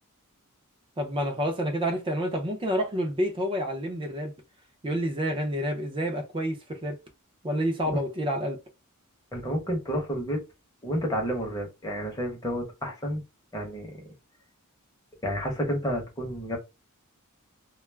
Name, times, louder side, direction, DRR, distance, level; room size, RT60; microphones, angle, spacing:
voice 1, 1.0-4.3 4.8-7.0 7.4-8.6, equal, 25° right, 0.5 m, -28 dB
voice 2, 9.3-10.4 10.8-13.2 13.5-14.1 15.2-16.6, equal, 15° left, 0.9 m, -30 dB
2.3 x 2.0 x 3.2 m
head